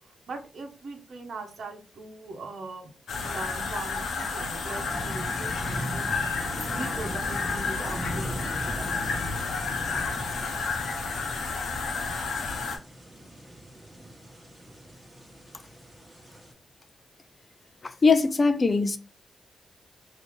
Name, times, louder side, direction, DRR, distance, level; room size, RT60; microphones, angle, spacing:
voice 1, 0.3-6.1 6.3-9.0, right 3 dB, 70° right, 0.9 m, -40 dB
sound 1, 3.1-12.8, left 4 dB, 80° left, 0.8 m, -31 dB
sound 2, 4.6-16.5, equal, 10° right, 1.3 m, -40 dB
voice 2, 18.0-19.0, left 4 dB, 40° left, 0.4 m, -21 dB
3.0 x 2.7 x 3.6 m
supercardioid pair, 50°, 0 cm